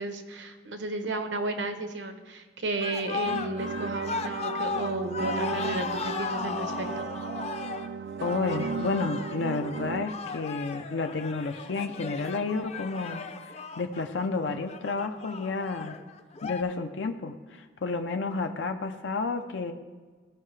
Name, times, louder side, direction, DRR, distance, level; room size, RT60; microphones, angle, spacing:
voice 1, 0.0-7.0, right 2 dB, 85° right, 7 dB, 0.9 m, -33 dB
sound 1, 2.8-16.6, left 5 dB, 35° left, 0.5 m, -36 dB
sound 2, 3.2-10.1, right 5 dB, 70° right, 0.3 m, -35 dB
voice 2, 8.2-16.0 16.4-19.7, left 4 dB, 90° left, 6 dB, 0.6 m, -31 dB
16.5 x 5.5 x 3.2 m, 1.4 s
head